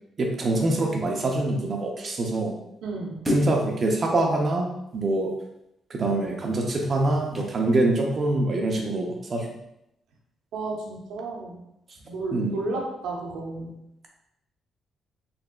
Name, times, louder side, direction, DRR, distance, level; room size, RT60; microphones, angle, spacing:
voice 1, 0.2-2.5 3.3-5.3 5.9-9.5 12.3-12.6, right 2 dB, 45° right, 0 dB, 0.6 m, -25 dB
voice 2, 2.8-3.2 10.5-11.6 12.0-13.8, right 2 dB, 85° right, -1 dB, 0.8 m, -32 dB
sound 1, 3.2-3.7 6.3-7.6 8.2-8.3, left 1 dB, 10° right, 0.8 m, -32 dB
4.0 x 3.3 x 2.2 m, 0.83 s
cardioid pair, 90°, 0 cm